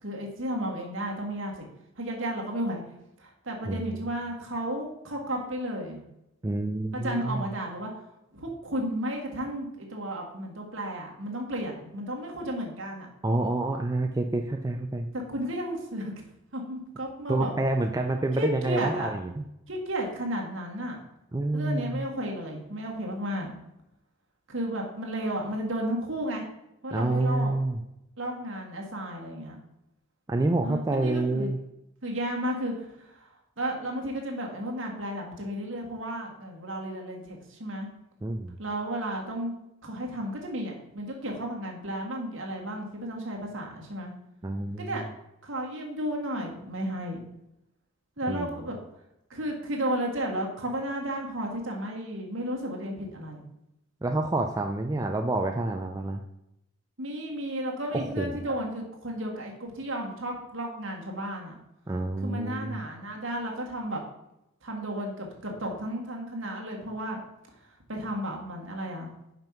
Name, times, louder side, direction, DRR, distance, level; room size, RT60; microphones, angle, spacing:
voice 1, 0.0-1.7 2.0-2.8 3.2-6.0 6.9-7.9 8.3-13.1 15.3-16.1 16.5-17.5 18.3-19.1 19.7-21.0 21.5-23.5 24.5-26.4 26.8-27.5 28.2-29.6 30.6-31.5 32.0-33.3 33.6-37.9 38.6-39.5 39.8-44.1 44.8-45.0 45.4-47.2 48.2-48.8 49.3-53.5 57.0-61.5 62.2-64.0 64.6-67.2 67.9-69.1, right 1 dB, 60° right, 0 dB, 1.7 m, -33 dB
voice 2, 6.4-7.5 13.2-15.1 17.3-19.4 21.3-22.0 26.9-27.8 30.3-31.6 38.2-38.6 44.4-45.1 48.3-48.5 54.0-56.2 57.9-58.3 61.9-62.9, right 2 dB, 15° right, 3 dB, 0.3 m, -28 dB
5.7 x 5.3 x 5.9 m, 0.86 s
head